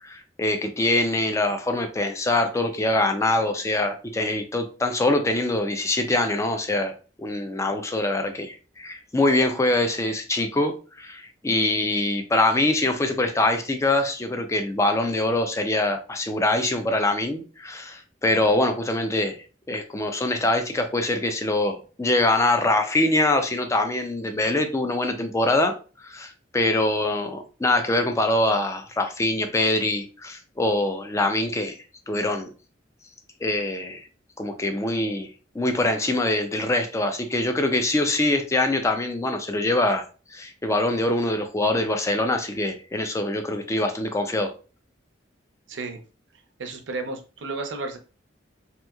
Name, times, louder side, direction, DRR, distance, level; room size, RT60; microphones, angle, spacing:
voice 1, 0.0-6.9 7.2-19.4 19.7-31.7 32.1-32.5 33.4-34.0 34.4-40.0 40.3-44.5, left 2 dB, 15° left, 6 dB, 0.4 m, -24 dB
voice 2, 45.7-46.0 46.6-48.0, right 3 dB, 75° right, 5 dB, 0.6 m, -32 dB
2.9 x 2.7 x 2.3 m, 0.35 s
head